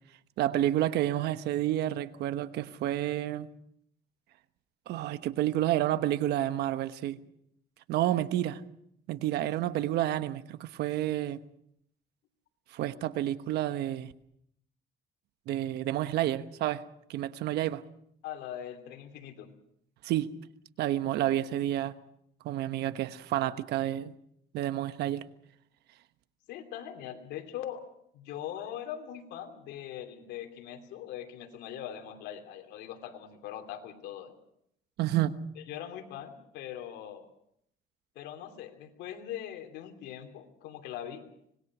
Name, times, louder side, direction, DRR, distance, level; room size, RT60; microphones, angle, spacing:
voice 1, 0.4-3.5 4.9-7.2 7.9-8.6 9.1-11.4 12.7-14.1 15.5-16.8 17.1-17.8 20.0-20.3 20.8-22.0 22.4-24.1 24.5-25.2 35.0-35.4, right 13 dB, 80° right, 12 dB, 1.2 m, -29 dB
voice 2, 18.2-19.5 26.5-27.9 28.1-34.3 35.6-37.3 38.1-41.2, left 10 dB, 85° left, 6 dB, 3.0 m, -41 dB
25.5 x 20.0 x 6.1 m, 0.72 s
cardioid pair, 110°, 17 cm